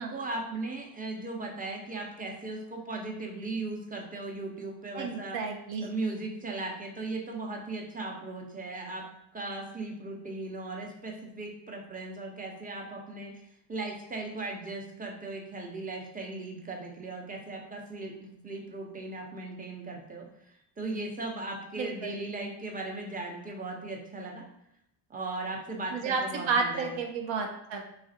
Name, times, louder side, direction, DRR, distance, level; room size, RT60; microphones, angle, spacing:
voice 1, 0.0-5.4 5.8-9.1 9.3-13.4 13.7-24.5 25.1-27.0, right 2 dB, 20° right, 0 dB, 0.8 m, -37 dB
voice 2, 4.9-5.9 21.8-22.2 25.9-27.8, right 4 dB, 75° right, 3 dB, 0.6 m, -31 dB
3.1 x 2.3 x 2.8 m, 0.78 s
supercardioid pair, 50°, 46 cm